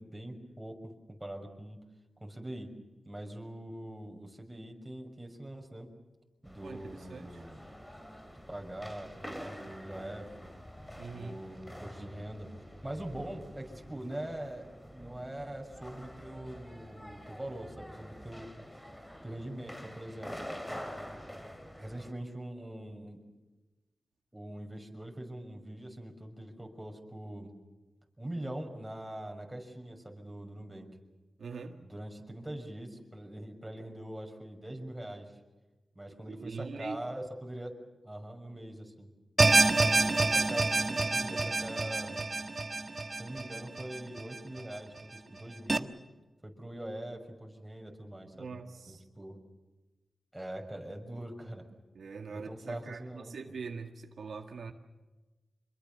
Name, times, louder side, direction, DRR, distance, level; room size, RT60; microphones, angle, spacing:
voice 1, 0.0-1.8 2.2-2.7 3.0-5.9 6.4-7.6 8.5-10.5 11.1-12.5 12.8-18.5 19.2-20.5 21.8-23.2 24.3-27.5 28.2-30.9 31.8-35.3 35.9-37.8 38.0-39.1 39.8-42.2 43.2-45.9 46.4-48.5 48.9-49.4 50.3-51.6 52.3-53.4, right 1 dB, 15° right, 6.4 m, -43 dB
sound 1, 6.4-22.1, equal, 10° left, 3.5 m, -47 dB
voice 2, 6.6-7.5 11.0-11.4 31.4-31.8 36.1-37.0 48.3-49.1 51.9-54.7, right 5 dB, 85° right, 2.0 m, -43 dB
sound 2, 39.4-44.6 45.0-45.1 45.7-45.8, right 3 dB, 40° right, 1.4 m, -27 dB
27.0 x 22.5 x 7.0 m
cardioid pair, 60°, 0 cm